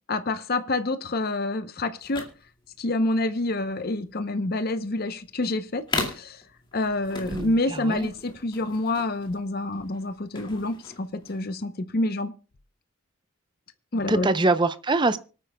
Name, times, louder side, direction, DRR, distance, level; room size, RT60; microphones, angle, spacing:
voice 1, 0.1-2.3 2.8-6.4 6.7-12.3 13.9-14.3, left 2 dB, 45° left, 0.7 m, -27 dB
Various Guitar Case sounds, 2.0-11.5, left 3 dB, 25° left, 2.2 m, -37 dB
voice 2, 7.3-8.1 14.1-15.2, right 2 dB, 20° right, 0.6 m, -24 dB
25.0 x 9.1 x 2.2 m
head